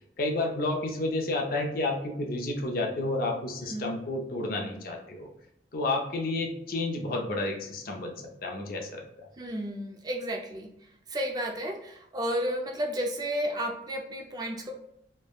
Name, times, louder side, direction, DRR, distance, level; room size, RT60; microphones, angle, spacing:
voice 1, 0.2-5.3 5.7-8.1 8.4-9.3, left 2 dB, 55° left, 1 dB, 0.5 m, -31 dB
voice 2, 9.4-10.7 11.1-14.7, equal, 20° right, 1 dB, 0.4 m, -32 dB
3.2 x 2.1 x 2.2 m, 0.78 s
head